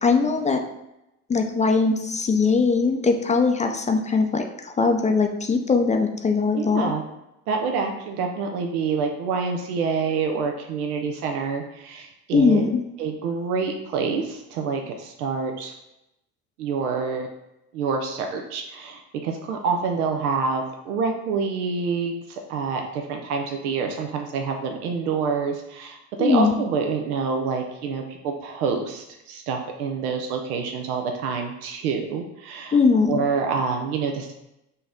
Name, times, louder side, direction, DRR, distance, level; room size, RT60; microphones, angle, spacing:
voice 1, 0.0-0.6 1.3-6.9 12.3-12.7 26.2-26.5 32.7-33.2, left 4 dB, 15° left, 4 dB, 0.4 m, -20 dB
voice 2, 6.5-7.0 7.5-12.6 13.0-15.7 16.6-17.3 17.7-32.8 33.1-34.3, right 5 dB, 90° right, 3 dB, 0.6 m, -27 dB
5.6 x 2.7 x 3.5 m, 0.89 s
hypercardioid pair, 75°, 43 cm